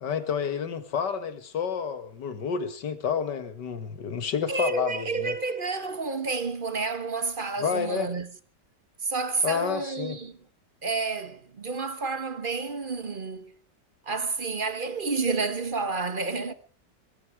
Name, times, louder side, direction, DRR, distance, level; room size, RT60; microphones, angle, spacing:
voice 1, 0.0-5.3 7.6-8.1 9.4-10.2, left 6 dB, 70° left, 2.3 m, -29 dB
voice 2, 4.5-8.3 9.0-10.4 10.8-13.6 14.0-16.5, right 4 dB, 35° right, 1.1 m, -30 dB
20.5 x 14.5 x 4.8 m
omnidirectional pair, 2.0 m